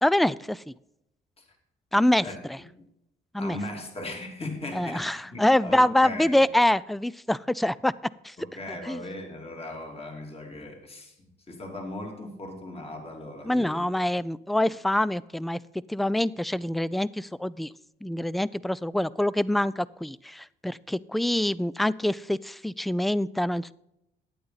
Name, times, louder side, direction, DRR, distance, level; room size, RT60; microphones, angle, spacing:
voice 1, 0.0-0.7 1.9-2.6 3.3-3.6 4.7-7.9 8.2-8.4 8.7-9.0 13.4-15.6 15.9-17.7 18.0-23.7, left 1 dB, ahead, 20 dB, 0.3 m, -25 dB
voice 2, 3.4-6.4 8.4-11.2 11.5-13.9, left 1 dB, 30° left, 2 dB, 2.6 m, -38 dB
11.5 x 9.1 x 4.0 m, 0.84 s
cardioid pair, 90°, 20 cm